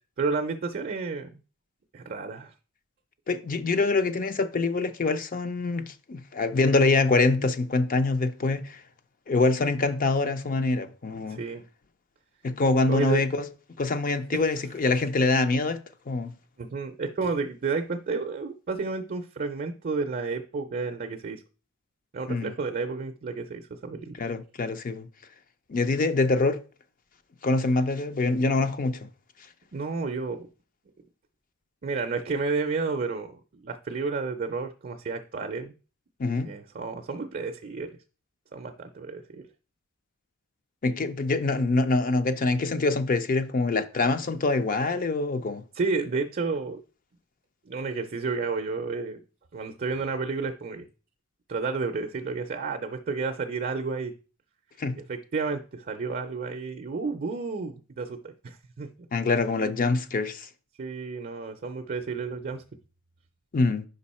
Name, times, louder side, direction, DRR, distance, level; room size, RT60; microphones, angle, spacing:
voice 1, 0.2-1.4 1.9-2.5 11.3-11.6 12.9-13.2 14.3-14.4 16.6-21.4 22.1-24.1 29.7-30.5 31.8-35.7 36.4-37.9 38.5-39.5 45.7-46.8 47.7-49.2 49.5-50.8 51.5-54.1 54.9-58.9 60.8-62.6, right 4 dB, 40° right, 0.5 m, -31 dB
voice 2, 3.3-8.8 9.3-11.4 12.4-13.4 13.8-15.8 16.1-16.3 22.3-22.5 24.2-25.1 25.7-26.6 27.4-29.0 36.2-36.5 40.8-45.6 54.8-55.0 59.1-60.5 63.5-63.8, left 3 dB, 40° left, 0.5 m, -25 dB
5.3 x 4.8 x 4.2 m
head